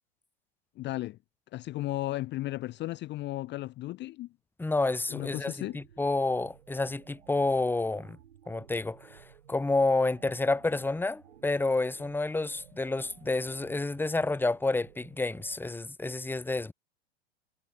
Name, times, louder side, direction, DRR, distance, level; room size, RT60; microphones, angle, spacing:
voice 1, 0.8-1.2 1.5-4.3 5.1-5.8, left 17 dB, 35° left, 0.7 m, -35 dB
voice 2, 4.6-8.2 8.5-16.7, left 2 dB, 5° left, 1.2 m, -29 dB
sound 1, 5.6-15.6, right 9 dB, 80° right, 7.3 m, -56 dB
hypercardioid pair, 95°, 33 cm